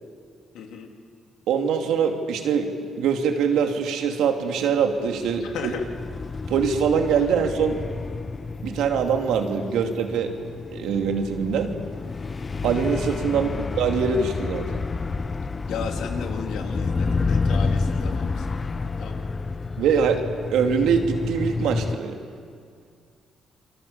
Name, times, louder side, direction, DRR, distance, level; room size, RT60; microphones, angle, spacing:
voice 1, 0.5-0.9 5.4-5.9 13.3-13.7 15.7-19.2, left 6 dB, 80° left, 3 dB, 2.9 m, -35 dB
voice 2, 1.5-2.7 3.0-5.7 6.5-7.8 8.6-10.3 10.7-11.7 12.6-13.5 13.8-14.8 19.8-20.2 20.5-22.2, right 6 dB, 85° right, 4 dB, 2.6 m, -23 dB
sound 1, 5.1-22.0, left 4 dB, 30° left, 0.9 m, -29 dB
28.5 x 23.0 x 7.3 m, 2.2 s
cardioid pair, 90°, 0 cm